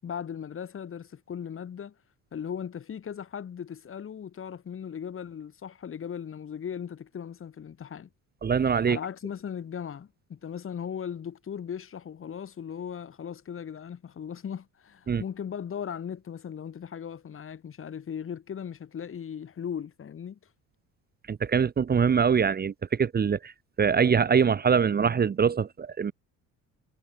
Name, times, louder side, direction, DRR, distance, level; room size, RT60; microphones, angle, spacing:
voice 1, 0.0-1.9 2.3-8.1 8.9-20.4, left 8 dB, 40° left, 7.6 m, -38 dB
voice 2, 8.4-9.0 15.1-15.2 21.3-23.5 23.8-26.1, right 6 dB, 30° right, 1.6 m, -23 dB
cardioid pair, 140°, 34 cm